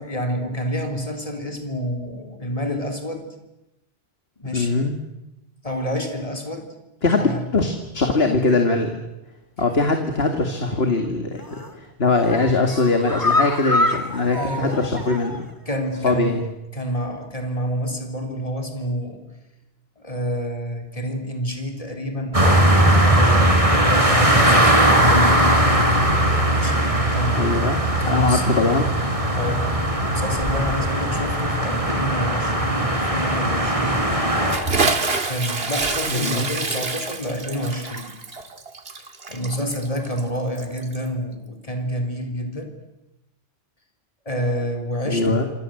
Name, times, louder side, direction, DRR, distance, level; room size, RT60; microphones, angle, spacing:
voice 1, 0.0-3.2 4.4-4.9 5.6-6.7 7.2-7.4 14.3-14.8 15.7-16.4 16.7-19.2 20.0-25.2 26.5-27.7 28.0-28.4 29.3-29.7 30.1-34.1 35.3-38.1 39.3-42.7 44.3-45.4, equal, 35° left, 4 dB, 3.9 m, -28 dB
voice 2, 4.5-5.0 7.0-9.0 9.6-15.4 16.0-16.4 27.3-29.0 36.1-36.5 45.0-45.4, left 3 dB, 75° left, 5 dB, 2.5 m, -21 dB
sound 1, 11.4-11.7 12.1-15.5 15.8-15.9 16.3-16.4, left 2 dB, 20° left, 2.3 m, -25 dB
sound 2, 22.3-34.6, right 1 dB, 35° right, 4.5 m, -19 dB
Bathtub (filling or washing) / Splash splatter, 34.5-41.1, right 3 dB, 70° right, 2.3 m, -26 dB
27.0 x 26.5 x 7.9 m, 0.93 s
omnidirectional pair, 1.0 m